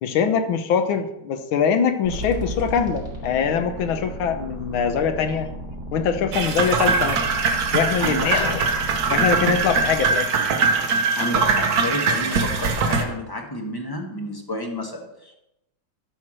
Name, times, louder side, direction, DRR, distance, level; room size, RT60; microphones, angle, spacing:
voice 1, 0.0-5.5 5.9-7.3 7.7-8.8 9.1-10.3, left 7 dB, 70° left, 8 dB, 1.6 m, -23 dB
sound 1, 2.0-10.1, equal, 30° right, 2.4 m, -34 dB
sound 2, 6.3-13.0, right 4 dB, 60° right, 1.1 m, -22 dB
voice 2, 8.0-8.6 11.2-15.3, left 1 dB, 15° left, 1 dB, 0.9 m, -30 dB
12.5 x 4.6 x 6.2 m, 0.87 s
omnidirectional pair, 2.4 m